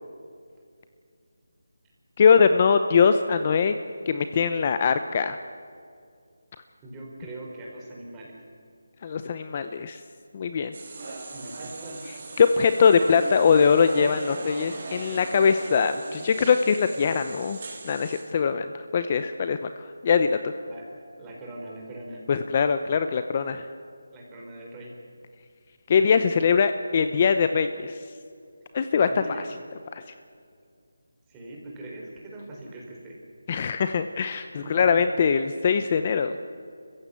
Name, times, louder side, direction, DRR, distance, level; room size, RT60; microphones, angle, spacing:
voice 1, 2.2-3.7 4.1-5.4 9.0-10.0 10.3-10.7 12.4-17.6 17.8-20.5 22.3-23.7 25.9-28.0 28.7-29.1 29.9-30.0 33.5-36.4, left 6 dB, 30° left, 9 dB, 0.8 m, -22 dB
voice 2, 6.8-8.4 11.3-12.0 20.6-22.3 24.1-24.9 29.1-29.5 31.3-33.2 34.6-34.9, right 1 dB, 10° right, -2 dB, 4.2 m, -41 dB
sound 1, 10.7-18.2, right 3 dB, 40° right, 3.9 m, -38 dB
28.0 x 15.5 x 8.3 m, 2.3 s
figure-of-eight pair, 170°, 0 cm